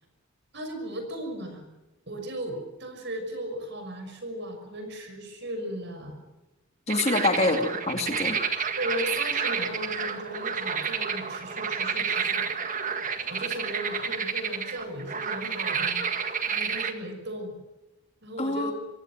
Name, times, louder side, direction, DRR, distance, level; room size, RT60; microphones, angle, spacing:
voice 1, 0.5-1.7 2.1-6.2 7.0-7.2 8.7-12.7 13.3-16.1 16.5-17.6 18.2-18.7, right 1 dB, 55° right, 6 dB, 6.2 m, -36 dB
voice 2, 6.9-8.4 18.4-18.7, left 2 dB, 30° left, 5 dB, 2.3 m, -25 dB
sound 1, 6.9-16.9, right 6 dB, 40° right, 1.8 m, -30 dB
25.5 x 16.5 x 9.0 m, 1.0 s
head